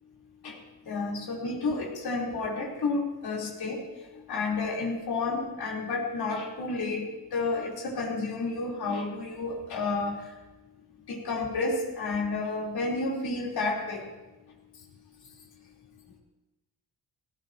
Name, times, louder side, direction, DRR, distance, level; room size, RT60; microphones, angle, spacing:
voice 1, 0.9-3.8 4.3-10.3 11.1-14.1, left 3 dB, 75° left, -2 dB, 3.9 m, -31 dB
17.0 x 16.5 x 3.0 m, 1.1 s
cardioid pair, 80°, 38 cm